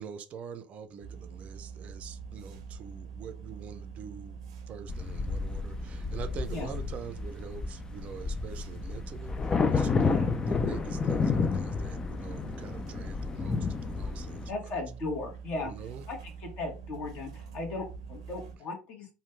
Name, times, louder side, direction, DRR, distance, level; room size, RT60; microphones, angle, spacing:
voice 1, 0.0-4.4 4.7-14.5 15.6-16.1, right 7 dB, 45° right, 0.5 m, -44 dB
sound 1, 1.0-18.6, right 6 dB, 90° right, 0.7 m, -45 dB
sound 2, 4.9-14.5, left 5 dB, 25° left, 0.3 m, -31 dB
voice 2, 14.5-15.7 16.1-19.1, left 3 dB, 55° left, 1.3 m, -37 dB
3.1 x 2.3 x 3.1 m
hypercardioid pair, 85°, 3 cm